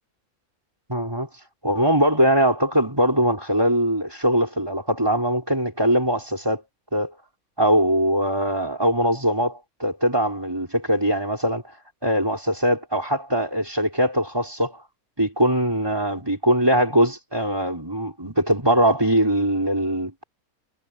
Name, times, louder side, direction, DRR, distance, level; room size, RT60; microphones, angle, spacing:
voice 1, 0.9-1.3 1.6-6.6 6.9-7.1 7.6-11.6 12.0-14.8 15.2-20.2, equal, 15° right, 6.1 m, -21 dB
omnidirectional pair, 1.5 m